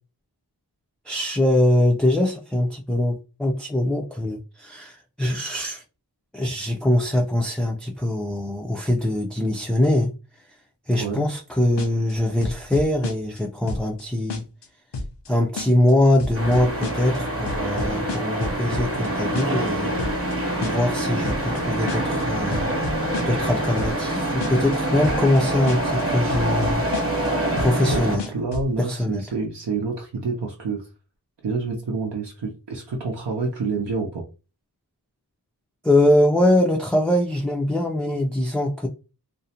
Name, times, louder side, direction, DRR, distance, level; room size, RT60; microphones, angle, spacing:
voice 1, 1.1-5.8 6.3-10.1 10.9-14.4 15.3-19.9 20.6-22.7 23.3-26.8 27.6-28.3 28.8-29.2 35.8-38.9, left 1 dB, ahead, 0.3 m, -22 dB
sound 1, 11.8-12.1 12.4-13.4 13.7-14.0 14.3-14.7 14.9-15.3 15.6-15.9 16.2-17.2 17.5-19.1 19.3-19.7 20.0-20.3 20.6-21.0 21.2-21.6 21.9-22.2 22.5-23.5 23.8-24.1 24.4-24.8 25.0-25.4 25.7-26.0 26.3-27.3 27.6-28.7, left 3 dB, 85° left, 0.5 m, -31 dB
sound 2, 16.3-28.2, right 1 dB, 35° right, 0.8 m, -25 dB
voice 2, 27.9-30.9 31.4-34.2, right 4 dB, 85° right, 0.6 m, -28 dB
2.5 x 2.0 x 2.7 m
wide cardioid pair, 55°, 41 cm